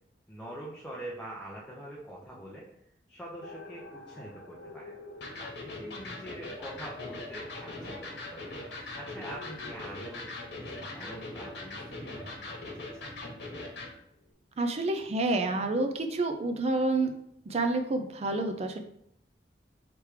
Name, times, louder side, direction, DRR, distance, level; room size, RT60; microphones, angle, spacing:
voice 1, 0.3-2.7 3.1-4.9 5.3-10.3 10.7-13.2, right 1 dB, 5° left, -5 dB, 0.7 m, -44 dB
sound 1, 3.4-9.7, left 2 dB, 90° left, 0.8 m, -49 dB
Electric guitar, 5.2-13.9, left 2 dB, 70° left, 1.2 m, -41 dB
voice 2, 14.6-17.1 17.5-18.8, right 2 dB, 35° right, 6 dB, 0.4 m, -28 dB
3.3 x 3.2 x 4.8 m, 0.72 s
head